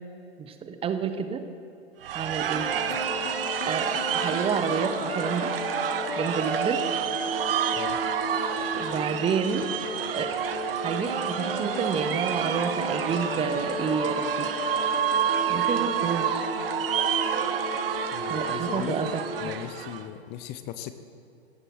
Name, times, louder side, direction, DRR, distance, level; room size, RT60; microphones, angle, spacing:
voice 1, 0.4-1.5 2.1-2.7 3.6-5.5 6.2-6.9 8.8-9.7 10.1-10.3 10.8-14.5 15.5-16.5 18.3-19.5, right 6 dB, 15° right, 9 dB, 0.9 m, -29 dB
sound 1, 2.0-20.0, right 9 dB, 60° right, 1.1 m, -29 dB
sound 2, 2.5-19.5, left 2 dB, 75° left, 3.0 m, -35 dB
voice 2, 18.1-19.0 19.4-20.9, left 12 dB, 30° left, 11 dB, 0.8 m, -37 dB
17.0 x 17.0 x 4.6 m, 2.6 s
figure-of-eight pair, 105°, 33 cm